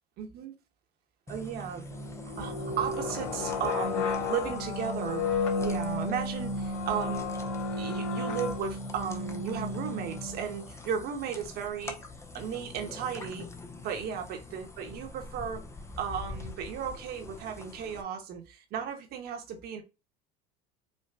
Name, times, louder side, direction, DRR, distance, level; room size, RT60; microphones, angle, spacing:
voice 1, 0.2-0.5 1.3-1.9 2.4-5.3 5.6-7.3 7.8-12.0 12.3-13.5 13.8-15.6 16.0-19.8, right 8 dB, 55° right, 1.6 m, -35 dB
sound 1, 1.3-18.0, left 2 dB, 15° left, 0.8 m, -44 dB
sound 2, 1.9-10.7, left 3 dB, 85° left, 2.1 m, -33 dB
5.2 x 3.1 x 2.6 m
supercardioid pair, 100°, 19 cm